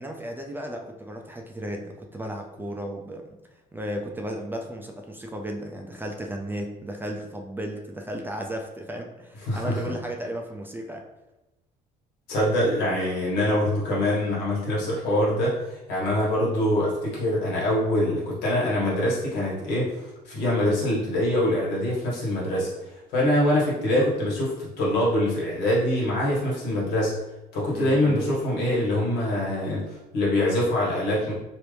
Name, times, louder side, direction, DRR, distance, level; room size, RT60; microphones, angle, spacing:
voice 1, 0.0-3.4 3.7-11.0 27.7-28.2, right 1 dB, 10° right, 2 dB, 0.4 m, -34 dB
voice 2, 9.5-9.9 12.3-27.2 27.5-31.3, left 1 dB, 90° left, -5 dB, 1.5 m, -24 dB
3.0 x 2.5 x 3.3 m, 0.98 s
cardioid pair, 110°, 17 cm